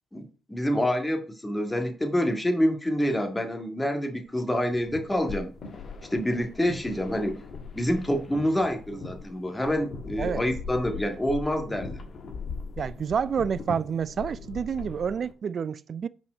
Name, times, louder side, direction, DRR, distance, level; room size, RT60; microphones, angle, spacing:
voice 1, 0.1-5.5 6.1-7.4 7.7-12.0, equal, 15° left, 1.8 m, -27 dB
sound 1, 4.5-15.3, left 4 dB, 55° left, 1.3 m, -40 dB
voice 2, 12.8-16.1, right 7 dB, 55° right, 0.3 m, -29 dB
5.4 x 5.1 x 6.2 m
hypercardioid pair, 45°, 0 cm